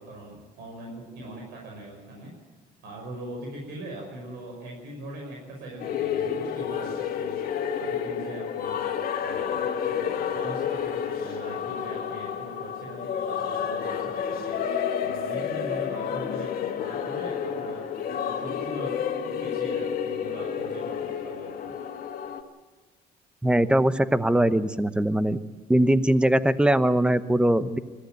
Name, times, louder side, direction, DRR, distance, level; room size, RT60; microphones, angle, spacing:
voice 1, 0.0-2.3 2.8-7.4 7.7-8.9 9.2-14.6 15.0-17.8 18.1-19.0 19.3-21.8, right 2 dB, 80° right, -1 dB, 5.7 m, -41 dB
sound 1, 5.8-22.4, left 8 dB, 60° left, 2.0 m, -30 dB
voice 2, 23.4-25.4 25.7-27.8, right 1 dB, 5° right, 13 dB, 0.9 m, -21 dB
21.5 x 14.5 x 9.2 m, 1.3 s
cardioid pair, 110°, 17 cm